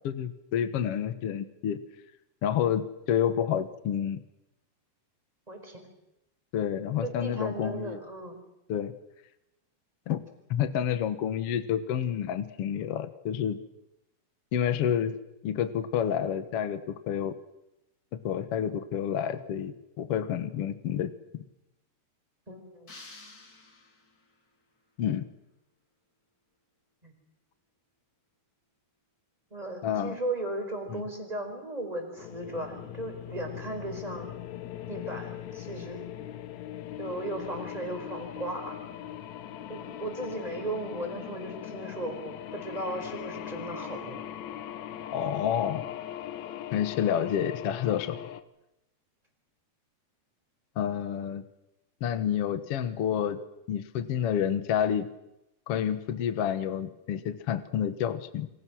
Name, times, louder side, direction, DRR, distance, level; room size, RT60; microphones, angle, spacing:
voice 1, 0.0-1.8 2.4-4.2 6.5-8.0 8.7-8.9 10.1-10.2 10.5-13.6 14.5-15.2 15.4-17.3 18.2-21.4 25.0-25.2 29.8-30.2 30.9-31.0 45.1-45.8 46.7-48.2 50.7-51.4 52.0-53.4 53.7-55.1 55.7-58.5, left 9 dB, 65° left, 10 dB, 1.5 m, -29 dB
voice 2, 5.5-5.9 7.0-8.4 22.5-23.0 27.0-27.1 29.5-34.3 34.9-36.0 37.0-38.8 39.7-44.2, right 1 dB, 10° right, 4 dB, 4.6 m, -36 dB
sound 1, 22.9-24.4, left 3 dB, 25° left, 2.7 m, -50 dB
sound 2, 32.2-48.4, left 11 dB, 90° left, 1.6 m, -40 dB
29.0 x 24.5 x 6.4 m, 0.89 s
omnidirectional pair, 4.8 m